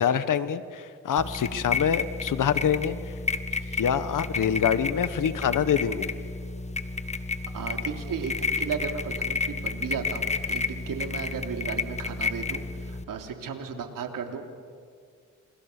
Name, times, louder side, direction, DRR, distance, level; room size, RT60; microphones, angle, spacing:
voice 1, 0.0-3.2 3.8-6.1, left 8 dB, 70° left, 12 dB, 1.5 m, -25 dB
sound 1, 1.2-13.0, left 3 dB, 20° left, 1.6 m, -31 dB
voice 2, 7.5-14.4, right 6 dB, 80° right, 4 dB, 3.2 m, -35 dB
29.5 x 29.0 x 6.8 m, 2.1 s
cardioid pair, 85°, 32 cm